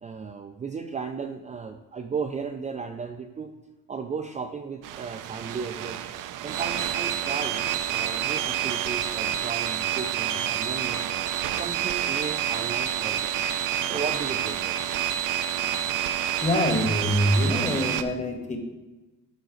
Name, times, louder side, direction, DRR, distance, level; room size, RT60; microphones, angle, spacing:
voice 1, 0.0-3.6 3.9-6.0 6.4-11.0 11.5-13.3 13.8-14.8, right 5 dB, 25° right, 4 dB, 0.4 m, -35 dB
sound 1, 4.8-18.0, right 10 dB, 70° right, 0.5 m, -28 dB
voice 2, 16.4-18.6, equal, 20° left, 3 dB, 1.2 m, -24 dB
12.0 x 4.1 x 3.9 m, 1.1 s
cardioid pair, 140°, 33 cm